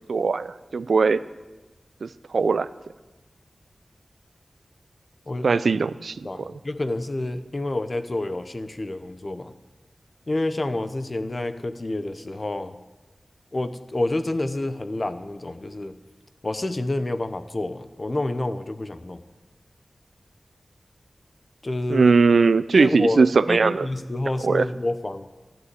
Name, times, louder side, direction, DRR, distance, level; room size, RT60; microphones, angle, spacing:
voice 1, 0.1-1.2 2.0-2.7 5.4-6.5 21.9-23.9 24.4-24.6, right 4 dB, 85° right, 16 dB, 0.5 m, -20 dB
voice 2, 6.2-9.5 10.3-12.8 13.5-15.9 16.4-19.2 21.6-22.1 22.7-25.3, left 2 dB, 40° left, 11 dB, 0.8 m, -28 dB
14.0 x 9.9 x 8.2 m, 1.1 s
wide cardioid pair, 70°, 0 cm